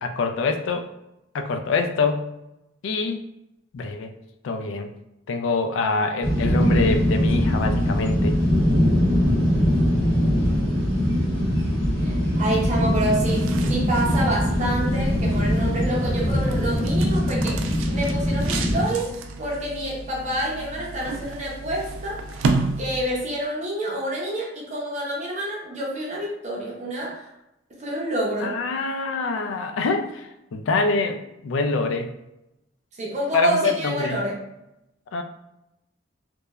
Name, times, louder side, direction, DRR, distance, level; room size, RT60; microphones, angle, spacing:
voice 1, 0.0-0.8 1.3-2.3 2.8-3.2 3.7-4.1 4.4-4.9 5.3-8.4 28.4-32.1 33.3-34.2 35.1-35.2, left 3 dB, 70° left, 7 dB, 0.3 m, -25 dB
sound 1, 6.2-18.8, equal, 25° left, 1.1 m, -22 dB
voice 2, 12.0-19.1 19.4-22.5 22.8-27.3 27.8-28.6 33.0-34.4, right 1 dB, 40° right, -3 dB, 0.6 m, -28 dB
sound 2, 13.0-23.4, right 3 dB, 85° right, 0.3 m, -32 dB
2.9 x 2.1 x 2.2 m, 0.89 s
head